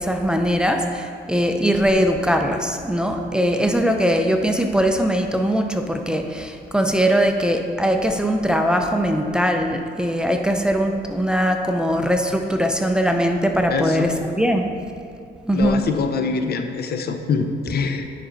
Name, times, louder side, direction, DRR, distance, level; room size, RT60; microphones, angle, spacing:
voice 1, 0.0-14.7 15.5-15.9, equal, 5° right, 4 dB, 0.6 m, -21 dB
voice 2, 15.5-18.0, left 5 dB, 55° left, 7 dB, 0.6 m, -24 dB
9.8 x 5.4 x 3.9 m, 2.5 s
cardioid pair, 90°, 20 cm